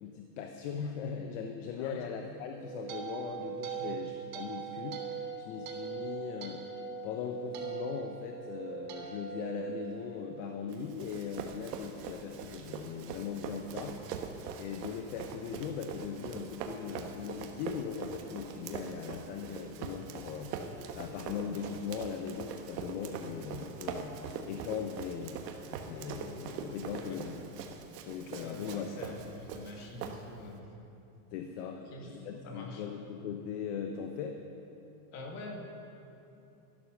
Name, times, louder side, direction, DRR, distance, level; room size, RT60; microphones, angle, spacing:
voice 1, 0.0-6.6 7.0-24.2 24.5-25.4 25.9-27.4 28.1-28.8 31.3-34.5, left 7 dB, 50° left, 4 dB, 1.0 m, -39 dB
sound 1, 2.4-10.7, right 7 dB, 35° right, 1.7 m, -41 dB
Run, 10.7-30.6, right 6 dB, 80° right, 1.4 m, -43 dB
voice 2, 28.4-30.7 31.7-32.1 32.4-32.8 35.1-35.5, left 2 dB, 35° left, 1 dB, 2.0 m, -45 dB
12.5 x 11.5 x 6.4 m, 2.8 s
supercardioid pair, 165°, 47 cm